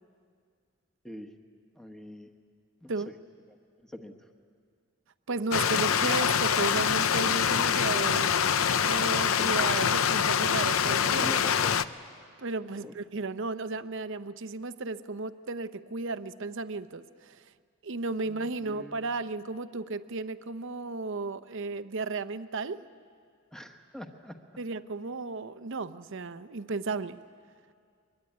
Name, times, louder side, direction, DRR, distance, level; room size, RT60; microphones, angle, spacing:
voice 1, 1.8-2.3 2.8-2.9 3.8-4.1 5.7-5.8 11.1-11.7 12.8-12.9 18.3-19.1 23.5-24.4, left 1 dB, 5° left, 4 dB, 1.3 m, -43 dB
voice 2, 5.3-11.3 12.4-17.4 17.8-22.8 24.6-27.2, right 3 dB, 65° right, 12 dB, 0.8 m, -34 dB
Stream, 5.5-11.8, left 7 dB, 75° left, 0.6 m, -25 dB
23.0 x 22.5 x 9.9 m, 2.1 s
head